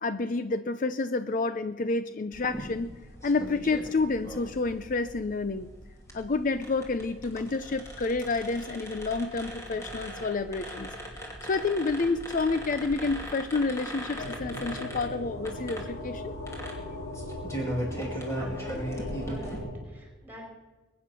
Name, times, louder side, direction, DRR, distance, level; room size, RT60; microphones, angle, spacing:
voice 1, 0.0-2.9 3.2-5.7 6.1-10.9 11.5-16.3, left 3 dB, 40° left, 12 dB, 0.5 m, -29 dB
sound 1, 2.3-19.6, equal, 15° left, 2.7 m, -39 dB
sound 2, 14.2-19.7, left 1 dB, 70° left, 5.3 m, -38 dB
voice 2, 18.4-20.5, equal, 10° right, 0 dB, 4.3 m, -47 dB
22.0 x 9.3 x 6.1 m, 1.2 s
head